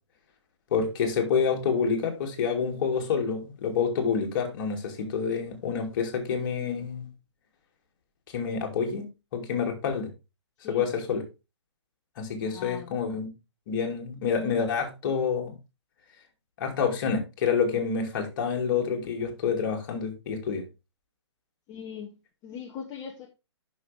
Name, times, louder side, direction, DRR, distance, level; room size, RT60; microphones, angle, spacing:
voice 1, 0.7-7.1 8.3-10.1 10.7-11.2 12.2-13.3 13.7-15.5 16.6-20.6, left 6 dB, 45° left, 2.7 m, -28 dB
voice 2, 12.5-12.9 21.7-22.2 22.4-23.3, left 8 dB, 25° left, 1.1 m, -40 dB
9.4 x 6.4 x 3.5 m
hypercardioid pair, 135°, 15 cm